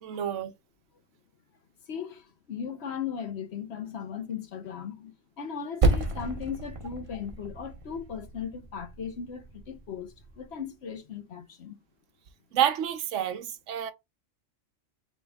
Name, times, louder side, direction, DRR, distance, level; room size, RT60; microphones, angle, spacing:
voice 1, 0.0-0.5 12.5-13.9, right 10 dB, 70° right, 1.0 m, -28 dB
voice 2, 1.9-11.8, left 7 dB, 60° left, 1.0 m, -37 dB
Percussion, 5.8-10.7, right 2 dB, 30° right, 0.8 m, -31 dB
4.2 x 3.0 x 3.4 m
omnidirectional pair, 1.4 m